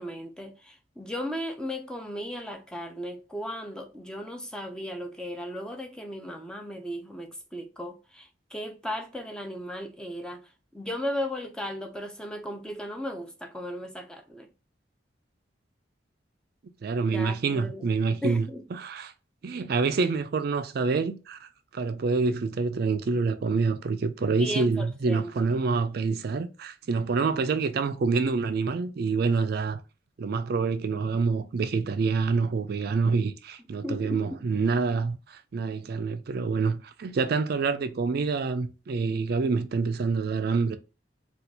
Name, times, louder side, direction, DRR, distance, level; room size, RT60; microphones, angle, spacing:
voice 1, 0.0-14.5 17.1-17.9 18.2-18.7 24.4-25.5 33.8-34.4, equal, 5° left, 0.5 m, -36 dB
voice 2, 16.8-19.1 19.4-29.8 30.2-40.8, right 4 dB, 55° right, 0.4 m, -27 dB
4.2 x 2.3 x 2.7 m
head